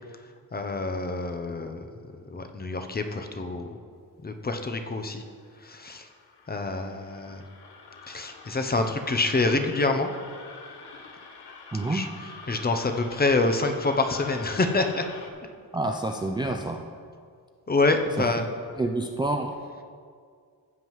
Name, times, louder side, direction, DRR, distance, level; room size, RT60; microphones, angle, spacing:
voice 1, 0.5-1.9 2.3-3.8 4.2-5.2 5.6-6.1 6.5-7.4 8.1-10.1 11.9-12.1 12.5-15.1 17.7-18.5, left 3 dB, 25° left, 6 dB, 0.6 m, -26 dB
sound 1, 5.3-15.3, left 4 dB, 85° left, 1.0 m, -46 dB
voice 2, 11.7-12.0 15.7-16.8 18.2-18.3 18.8-19.5, right 2 dB, 15° right, 3 dB, 0.3 m, -28 dB
15.5 x 7.4 x 3.1 m, 2.1 s
wide cardioid pair, 130°, 38 cm